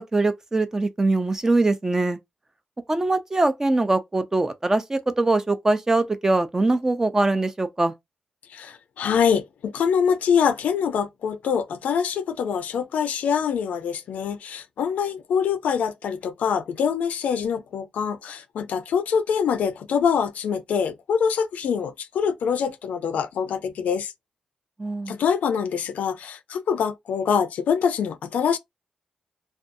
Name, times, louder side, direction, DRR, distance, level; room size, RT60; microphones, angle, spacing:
voice 1, 0.0-2.2 2.9-7.9 24.8-25.2, right 2 dB, 20° right, 0.4 m, -22 dB
voice 2, 8.5-24.1 25.1-28.6, left 7 dB, 85° left, 0.4 m, -24 dB
2.5 x 2.3 x 2.5 m
cardioid pair, 90°, 3 cm